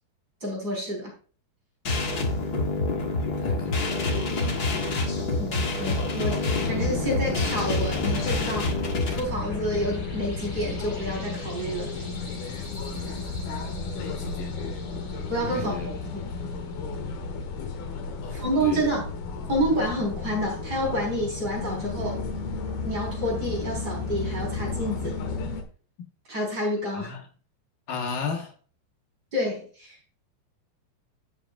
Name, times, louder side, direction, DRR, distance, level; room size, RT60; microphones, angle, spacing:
voice 1, 0.4-1.1 5.4-8.7 9.1-11.9 15.3-15.7 16.1-16.2 18.3-19.1 19.5-22.2 22.8-25.2 26.3-27.1 29.3-29.9, equal, 25° right, 4.9 m, -29 dB
sound 1, 1.8-9.2, left 2 dB, 55° left, 1.1 m, -27 dB
voice 2, 3.4-4.3 14.0-14.6 15.4-15.9 18.2-18.9 26.9-27.2 27.9-28.5, left 5 dB, 70° left, 3.1 m, -35 dB
sound 2, 6.5-25.6, left 4 dB, 90° left, 3.3 m, -33 dB
sound 3, 8.7-17.8, left 2 dB, 25° left, 5.1 m, -48 dB
13.5 x 7.8 x 2.5 m
omnidirectional pair, 4.2 m